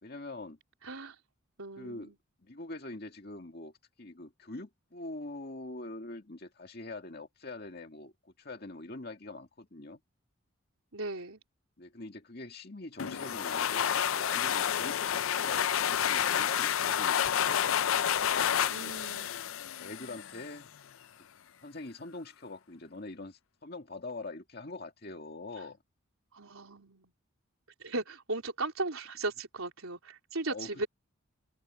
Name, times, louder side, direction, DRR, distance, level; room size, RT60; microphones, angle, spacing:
voice 1, 0.0-0.6 1.8-2.1 2.4-3.7 4.0-10.0 11.8-17.9 18.7-19.0 19.8-20.7 21.6-25.8 30.5-30.7, left 2 dB, 45° left, 2.1 m, -44 dB
voice 2, 0.8-1.2 1.6-2.2 10.9-11.4 18.7-19.3 26.3-27.1 27.8-30.9, right 2 dB, 85° right, 3.8 m, -37 dB
sound 1, 13.0-20.5, left 9 dB, 75° left, 0.5 m, -29 dB
head